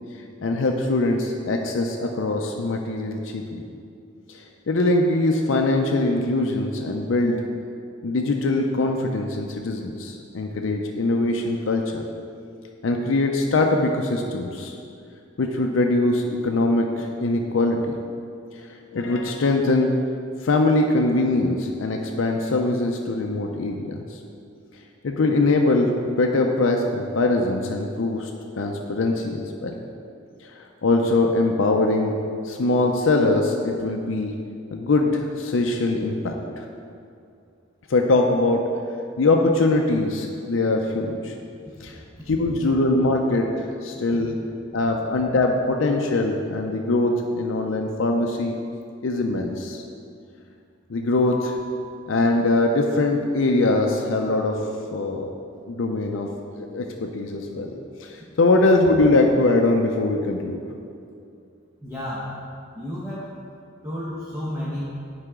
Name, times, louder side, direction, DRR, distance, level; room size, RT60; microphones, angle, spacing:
voice 1, 0.4-3.6 4.3-7.4 8.0-12.0 12.8-14.8 15.4-18.0 18.9-19.9 20.4-24.0 25.0-28.3 28.6-29.8 30.6-32.1 32.4-34.3 34.7-36.6 37.9-38.6 39.2-41.3 41.8-42.0 42.3-44.4 44.7-48.6 49.0-49.8 50.9-54.6 54.9-55.3 55.7-56.3 56.6-57.7 58.0-60.6, left 2 dB, 70° left, 2 dB, 0.5 m, -22 dB
voice 2, 61.8-62.4 62.7-63.3 63.8-64.9, left 1 dB, 15° right, -8 dB, 1.1 m, -31 dB
9.7 x 4.8 x 3.6 m, 2.4 s
head